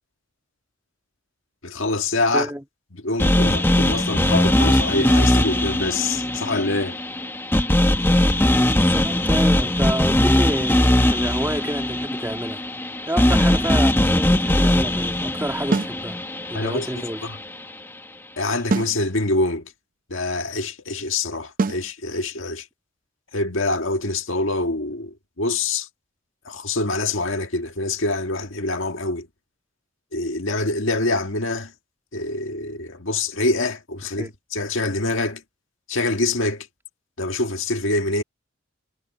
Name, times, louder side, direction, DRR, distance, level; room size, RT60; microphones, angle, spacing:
voice 1, 1.6-2.5 2.9-7.0 16.5-16.9 17.2-17.4 18.4-19.7 20.1-22.6 23.3-25.9 26.5-29.3 30.1-31.7 32.1-35.4 35.9-36.7 37.2-38.2, left 2 dB, 65° left, 1.8 m, -25 dB
voice 2, 2.3-2.6 8.5-12.6 13.1-16.2 16.5-17.2 34.2-34.3, right 1 dB, 10° right, 2.1 m, -29 dB
sound 1, 3.2-17.4, left 1 dB, 10° left, 1.2 m, -20 dB
sound 2, 15.7-16.0 18.7-19.0 21.6-21.9, right 3 dB, 45° right, 0.5 m, -23 dB
head